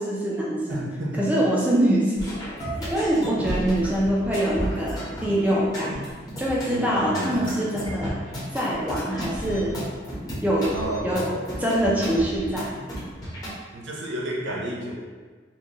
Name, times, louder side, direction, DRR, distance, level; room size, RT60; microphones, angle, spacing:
voice 1, 0.0-0.8 1.2-2.3 2.8-5.9 6.4-8.1 8.5-9.8 10.4-10.7 11.0-11.2 11.6-12.7, right 1 dB, 10° right, -5 dB, 0.6 m, -24 dB
voice 2, 0.7-1.3 6.7-7.3 10.7-11.4 13.7-14.9, right 1 dB, 80° right, -2 dB, 0.8 m, -31 dB
sound 1, 2.2-13.5, equal, 20° left, 1.0 m, -33 dB
4.5 x 2.4 x 3.0 m, 1.5 s
head